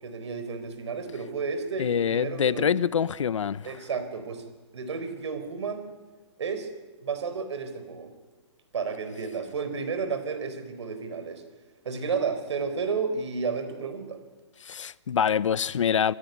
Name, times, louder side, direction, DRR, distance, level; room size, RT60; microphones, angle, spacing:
voice 1, 0.0-2.9 3.6-4.4 4.7-5.9 6.4-6.7 7.0-8.1 8.7-11.4 11.8-14.2, right 5 dB, 70° right, 4.2 m, -32 dB
voice 2, 1.8-3.7 14.7-16.1, left 7 dB, 85° left, 0.7 m, -25 dB
27.0 x 14.0 x 9.6 m
hypercardioid pair, 170°, 15 cm